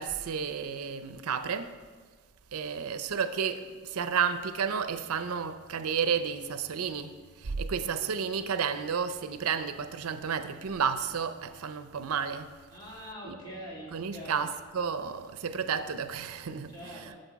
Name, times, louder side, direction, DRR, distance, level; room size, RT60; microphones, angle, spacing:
voice 1, 0.0-1.7 2.5-12.5 13.2-13.3 13.9-17.1, right 6 dB, 85° right, 0.5 m, -32 dB
voice 2, 12.7-14.4 16.7-17.2, equal, 20° left, 2.6 m, -43 dB
12.0 x 6.6 x 4.6 m
head